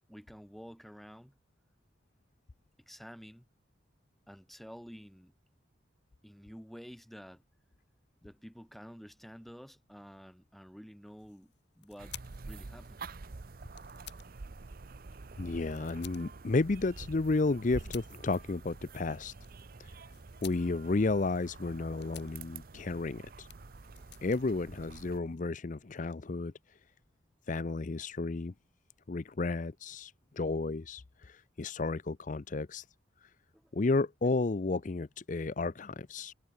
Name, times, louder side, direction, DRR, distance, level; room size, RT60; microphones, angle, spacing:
voice 1, 0.1-1.3 2.9-3.4 4.3-5.3 6.2-7.4 8.2-13.0 24.0-24.1 33.5-33.7, equal, ahead, 1.5 m, -50 dB
sound 1, 11.0-25.6, left 10 dB, 60° left, 3.8 m, -55 dB
sound 2, 12.0-25.2, right 3 dB, 50° right, 0.7 m, -48 dB
voice 2, 15.4-19.3 19.8-19.9 20.4-23.5 24.2-26.5 27.5-28.5 29.1-32.8 33.7-36.3, left 3 dB, 40° left, 0.5 m, -32 dB
head